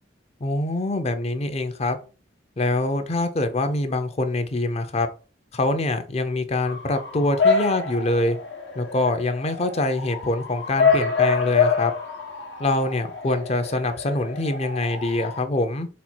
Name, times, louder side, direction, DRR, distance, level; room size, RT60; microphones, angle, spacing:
voice 1, 0.4-2.0 2.6-5.1 5.5-8.4 8.7-11.9 12.6-15.9, left 2 dB, 35° left, 8 dB, 0.6 m, -24 dB
Bark / Motor vehicle (road) / Siren, 6.7-15.4, left 5 dB, 75° left, 0.9 m, -26 dB
4.2 x 2.3 x 4.3 m, 0.35 s
head